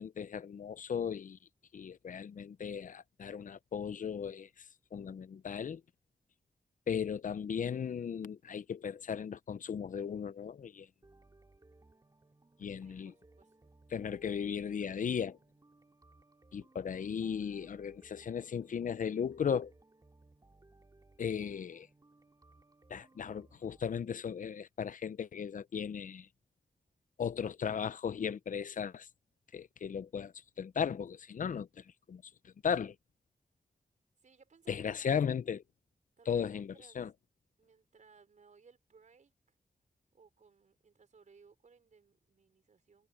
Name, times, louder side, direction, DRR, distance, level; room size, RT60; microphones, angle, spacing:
voice 1, 0.0-1.4 1.7-4.5 4.9-5.8 6.9-10.9 12.6-13.1 13.9-15.4 16.5-19.7 21.2-21.9 22.9-26.3 27.2-29.1 29.5-30.3 30.6-32.2 32.6-32.9 34.7-35.6 36.3-36.7 37.0-37.1, left 7 dB, 70° left, 0.6 m, -36 dB
sound 1, 11.0-23.8, right 2 dB, 25° right, 3.4 m, -63 dB
voice 2, 12.8-13.7 34.2-35.1 36.2-37.0 37.6-39.5 40.1-43.1, right 5 dB, 65° right, 4.9 m, -63 dB
wide cardioid pair, 120°, 14 cm